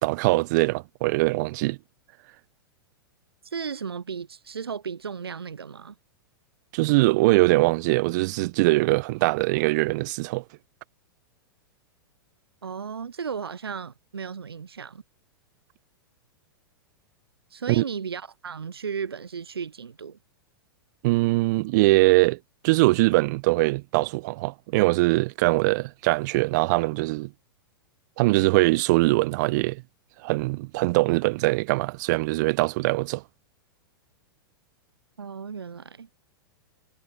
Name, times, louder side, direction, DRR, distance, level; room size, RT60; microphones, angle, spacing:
voice 1, 0.0-1.8 6.7-10.4 17.7-17.8 21.0-22.4 22.6-27.3 28.2-29.8 30.2-33.2, right 22 dB, 50° right, 1.0 m, -22 dB
voice 2, 3.4-6.0 12.6-15.0 17.5-20.2 35.2-36.1, right 6 dB, 85° right, 0.7 m, -35 dB
figure-of-eight pair, 100°, 13 cm